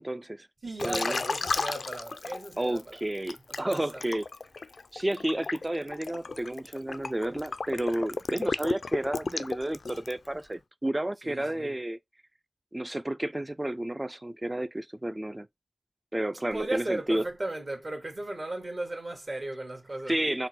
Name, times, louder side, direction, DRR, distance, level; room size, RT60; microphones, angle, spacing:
voice 1, 0.0-0.5 0.8-1.2 2.6-4.2 4.9-12.0 12.7-15.5 16.1-17.2 20.1-20.5, right 1 dB, 25° right, 0.4 m, -31 dB
voice 2, 0.6-3.0 3.5-4.0 11.2-11.7 16.5-20.2, right 2 dB, 55° right, 1.7 m, -36 dB
Liquid, 0.8-2.8 3.3-10.3, left 4 dB, 75° left, 0.3 m, -33 dB
3.9 x 2.2 x 4.3 m
cardioid pair, 45°, 0 cm